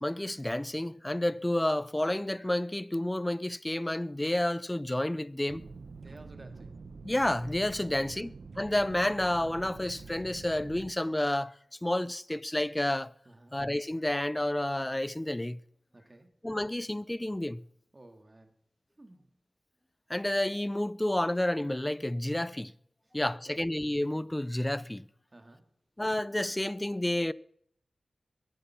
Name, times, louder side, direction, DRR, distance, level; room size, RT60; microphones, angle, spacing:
voice 1, 0.0-5.6 7.0-13.1 13.5-15.6 16.4-17.7 20.1-22.7 23.1-25.0 26.0-27.3, left 1 dB, 15° left, 0.5 m, -30 dB
sound 1, 5.5-10.9, right 4 dB, 75° right, 0.9 m, -46 dB
voice 2, 6.0-6.8 7.8-8.3 13.3-13.6 15.9-16.3 17.9-18.5 19.0-19.3 23.3-23.7 25.3-25.7, right 1 dB, 30° right, 2.1 m, -54 dB
22.5 x 9.3 x 5.8 m
wide cardioid pair, 90°, 0 cm